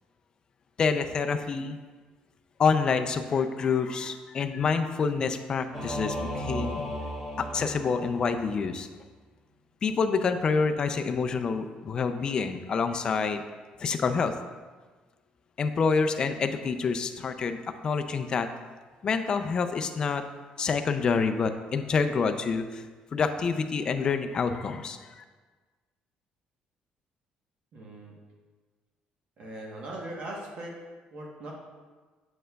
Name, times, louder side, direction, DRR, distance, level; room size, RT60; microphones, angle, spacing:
voice 1, 0.8-1.8 2.6-6.8 7.4-8.9 9.8-13.4 13.8-14.3 15.6-17.6 17.8-18.5 19.0-20.2 20.6-22.8 23.1-25.2, left 5 dB, 30° left, 7 dB, 0.3 m, -27 dB
Singing / Musical instrument, 5.7-8.6, equal, ahead, 1.2 m, -35 dB
voice 2, 27.7-28.1 29.4-30.8 31.1-31.5, right 1 dB, 45° right, -2 dB, 1.0 m, -39 dB
7.8 x 6.2 x 2.2 m, 1.4 s
cardioid pair, 170°, 3 cm